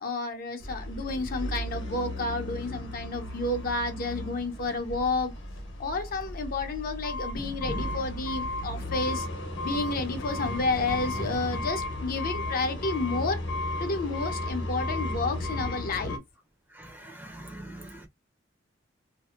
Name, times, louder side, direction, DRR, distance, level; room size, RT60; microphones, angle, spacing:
voice 1, 0.0-5.3 5.8-9.3 9.6-13.4 13.8-16.2, left 3 dB, 50° left, 0.6 m, -31 dB
sound 1, 0.6-16.2, left 1 dB, 70° left, 0.9 m, -34 dB
voice 2, 16.7-18.1, right 1 dB, 10° right, 0.5 m, -44 dB
2.7 x 2.1 x 2.3 m
head